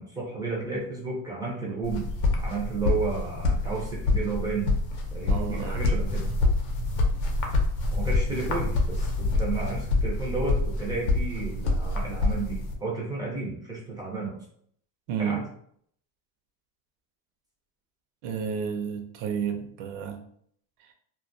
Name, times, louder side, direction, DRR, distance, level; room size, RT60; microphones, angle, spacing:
voice 1, 0.0-2.1 2.4-4.7 5.1-6.3 7.9-14.4 15.2-15.4, right 4 dB, 10° right, -4 dB, 0.4 m, -32 dB
sound 1, 1.8-12.7, left 2 dB, 65° left, 0.7 m, -26 dB
voice 2, 5.3-5.8 15.1-15.4 18.2-20.2 20.8-20.9, right 7 dB, 60° right, 4 dB, 0.6 m, -31 dB
2.3 x 2.1 x 2.5 m, 0.65 s
supercardioid pair, 140°, 47 cm